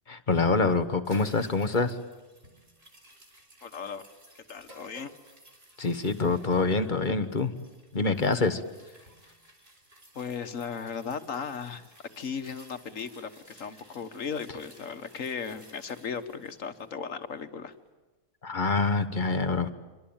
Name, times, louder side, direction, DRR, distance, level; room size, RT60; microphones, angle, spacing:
voice 1, 0.1-2.0 5.8-7.5 7.9-8.6 18.4-19.7, left 3 dB, 40° left, 10 dB, 1.5 m, -26 dB
sound 1, 1.0-17.5 17.9-18.0, right 1 dB, 50° right, 5.1 m, -57 dB
sound 2, 1.1-1.4 2.6-3.0 4.6-5.3, right 1 dB, 35° right, 4.1 m, -50 dB
voice 2, 3.6-4.0 4.5-5.1 10.2-11.9 12.2-17.8, left 6 dB, 85° left, 9 dB, 1.8 m, -36 dB
26.0 x 25.5 x 8.9 m, 1.2 s
omnidirectional pair, 1.3 m